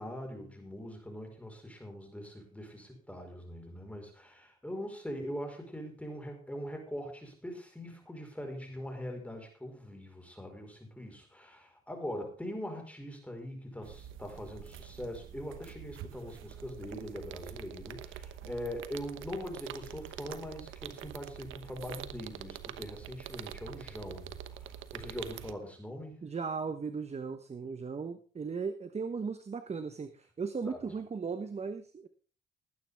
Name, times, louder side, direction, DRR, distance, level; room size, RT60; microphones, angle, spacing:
voice 1, 0.0-26.2 30.6-30.8, equal, 5° left, 3 dB, 4.8 m, -42 dB
sound 1, 13.8-25.5, right 10 dB, 80° right, 1.1 m, -46 dB
voice 2, 26.2-32.1, right 5 dB, 30° right, 9 dB, 1.1 m, -37 dB
19.0 x 9.3 x 3.6 m, 0.38 s
cardioid pair, 90°, 20 cm